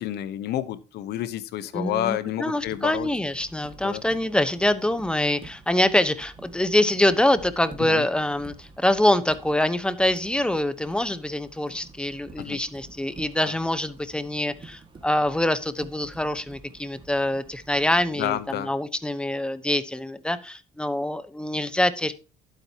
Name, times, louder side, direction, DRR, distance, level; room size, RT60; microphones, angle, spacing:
voice 1, 0.0-3.1 3.8-4.0 7.8-8.0 12.4-12.6 13.4-13.6 18.1-18.7, left 12 dB, 75° left, 1.1 m, -29 dB
voice 2, 1.7-22.1, left 1 dB, 5° left, 1.0 m, -25 dB
sound 1, 2.6-18.5, right 3 dB, 30° right, 1.9 m, -49 dB
11.5 x 9.0 x 2.9 m
cardioid pair, 110°, 17 cm